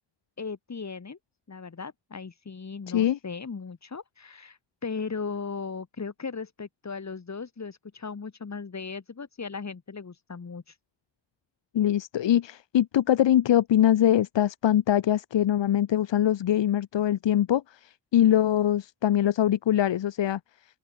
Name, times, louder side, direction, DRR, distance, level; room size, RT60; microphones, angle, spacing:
voice 1, 0.4-1.2 1.5-10.8, left 5 dB, 40° left, 7.9 m, -37 dB
voice 2, 2.9-3.2 11.7-20.4, left 11 dB, 90° left, 1.1 m, -23 dB
open air
wide cardioid pair, 160°, 43 cm